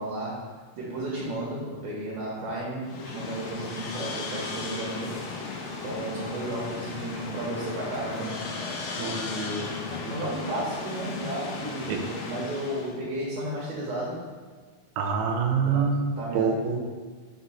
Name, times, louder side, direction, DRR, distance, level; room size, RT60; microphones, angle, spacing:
voice 1, 0.0-5.1 5.8-8.3 9.0-14.2 15.5-16.5, right 1 dB, 60° right, -5 dB, 2.1 m, -33 dB
sound 1, 2.8-13.0, left 4 dB, 80° left, 1.6 m, -36 dB
voice 2, 15.0-16.8, right 5 dB, 85° right, 4 dB, 2.6 m, -26 dB
5.9 x 4.0 x 5.5 m, 1.5 s
omnidirectional pair, 4.3 m